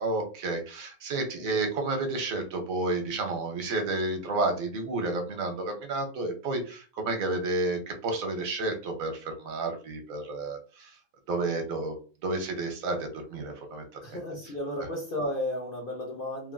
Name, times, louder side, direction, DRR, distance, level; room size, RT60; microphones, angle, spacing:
voice 1, 0.0-10.9 11.3-12.0 12.2-13.8, right 2 dB, 70° right, 4 dB, 1.1 m, -31 dB
voice 2, 1.4-1.7 14.0-16.5, left 1 dB, 45° left, -1 dB, 0.8 m, -34 dB
3.1 x 2.4 x 2.2 m, 0.37 s
omnidirectional pair, 1.6 m